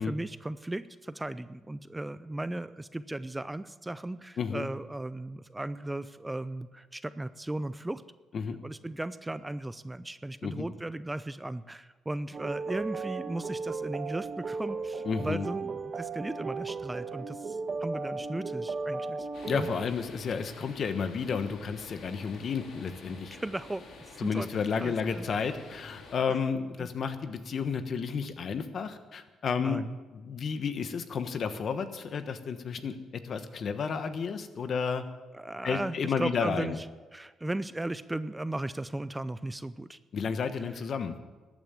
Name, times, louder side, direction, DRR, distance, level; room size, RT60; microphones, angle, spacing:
voice 1, 0.0-8.0 8.6-19.7 23.3-24.5 24.8-25.3 26.3-26.4 26.8-26.9 29.6-30.0 35.3-36.9 37.1-40.0, right 1 dB, 10° right, 14 dB, 0.5 m, -36 dB
voice 2, 4.4-4.7 8.3-8.6 10.4-10.7 15.0-15.5 19.4-23.4 24.2-29.8 30.1-35.0 35.6-36.8 40.1-41.1, left 6 dB, 55° left, 10 dB, 1.2 m, -32 dB
sound 1, 12.3-19.7, right 4 dB, 45° right, 1.3 m, -35 dB
sound 2, 19.3-26.2, left 3 dB, 70° left, 2.9 m, -49 dB
14.0 x 9.2 x 7.5 m, 1.3 s
cardioid pair, 90°, 0 cm